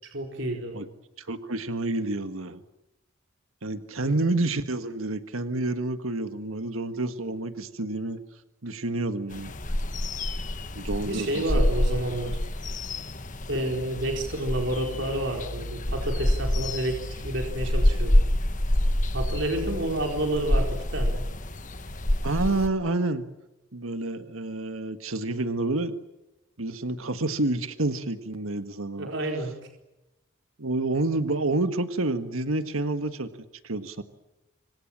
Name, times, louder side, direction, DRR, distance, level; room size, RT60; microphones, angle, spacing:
voice 1, 0.0-0.8 4.0-4.1 11.0-12.4 13.5-18.2 19.1-21.2 29.0-29.5, right 1 dB, 60° right, 2 dB, 4.5 m, -30 dB
voice 2, 1.2-2.6 3.6-8.2 8.6-9.5 10.7-11.6 22.2-23.3 23.7-26.0 26.6-29.1 30.6-33.3 33.6-34.0, right 2 dB, 85° right, 9 dB, 1.6 m, -29 dB
sound 1, 9.3-22.7, left 1 dB, 35° left, 1.5 m, -27 dB
26.5 x 26.0 x 7.5 m, 0.95 s
head